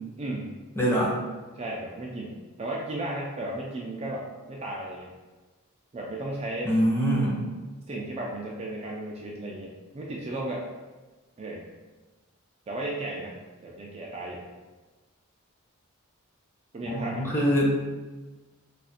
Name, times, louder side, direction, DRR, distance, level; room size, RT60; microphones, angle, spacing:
voice 1, 0.2-0.6 1.5-5.1 5.9-6.7 7.9-10.7 11.4-11.7 12.7-13.3 13.6-14.4 16.7-17.3, right 1 dB, 30° right, -3 dB, 0.3 m, -34 dB
voice 2, 0.8-1.1 6.7-7.4 16.9-17.8, equal, 10° left, -5 dB, 0.7 m, -24 dB
2.4 x 2.4 x 4.1 m, 1.2 s
head